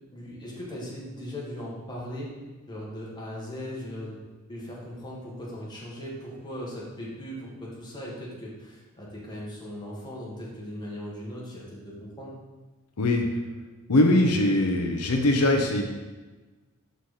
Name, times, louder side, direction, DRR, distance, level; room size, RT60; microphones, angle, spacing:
voice 1, 0.1-2.3 2.7-4.2 4.5-12.3, equal, 20° left, -5 dB, 1.4 m, -38 dB
voice 2, 13.0-13.3 13.9-15.8, left 1 dB, 85° left, 3 dB, 0.7 m, -21 dB
5.7 x 4.0 x 4.9 m, 1.2 s
head